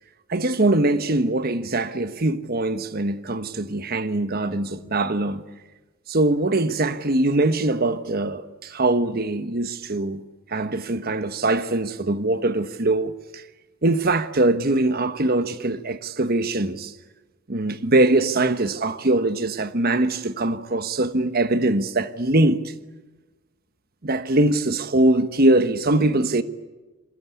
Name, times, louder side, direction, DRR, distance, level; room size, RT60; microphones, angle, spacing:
voice 1, 0.3-5.4 6.1-10.2 10.5-13.4 13.8-16.9 17.5-22.7 24.0-26.4, right 2 dB, 45° right, 1.2 m, -22 dB
28.0 x 22.5 x 8.4 m
head